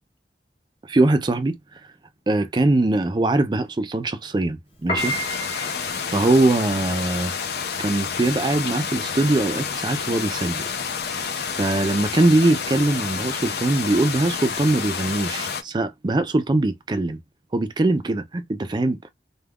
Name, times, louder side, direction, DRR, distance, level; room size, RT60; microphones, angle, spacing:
voice 1, 0.9-1.6 2.3-5.1 6.1-7.3 7.8-10.6 11.5-17.2 17.5-19.1, right 2 dB, 25° right, 0.4 m, -22 dB
Piano, 4.7-15.1, right 1 dB, 30° left, 0.8 m, -35 dB
sound 1, 5.0-15.6, left 6 dB, 60° left, 0.5 m, -29 dB
2.3 x 2.2 x 3.4 m
head